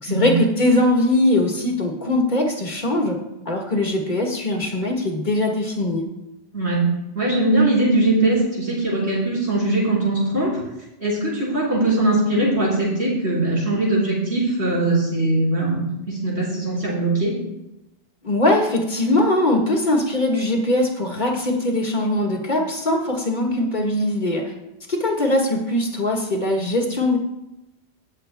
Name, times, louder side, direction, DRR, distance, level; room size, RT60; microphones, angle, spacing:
voice 1, 0.0-3.2 3.5-6.0 18.2-24.4 24.9-27.2, left 1 dB, 45° left, 0 dB, 1.8 m, -21 dB
voice 2, 7.1-10.6 11.0-17.3, right 2 dB, 70° right, -7 dB, 4.9 m, -21 dB
22.0 x 7.5 x 2.2 m, 0.92 s
omnidirectional pair, 1.1 m